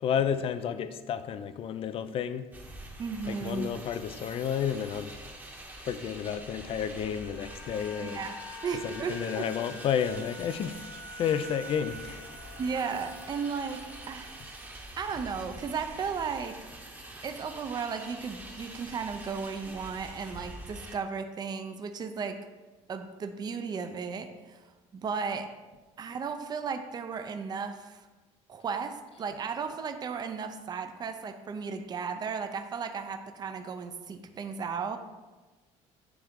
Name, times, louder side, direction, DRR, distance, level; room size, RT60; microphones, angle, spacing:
voice 1, 0.0-2.5 3.3-5.2 5.9-8.2 8.8-10.8 11.1-12.2, left 8 dB, 45° left, 11 dB, 0.4 m, -31 dB
sound 1, 2.5-21.0, right 1 dB, 15° right, 0.9 m, -46 dB
voice 2, 3.0-3.8 8.0-9.5 12.6-14.3 15.0-16.6 17.2-22.4 22.9-24.7 24.9-25.6 26.0-28.1 28.5-35.0, right 5 dB, 30° right, 7 dB, 0.5 m, -35 dB
sound 2, 6.5-14.8 15.1-15.3, left 1 dB, 65° left, 1.1 m, -47 dB
9.4 x 3.4 x 3.7 m, 1.2 s
cardioid pair, 110°, 14 cm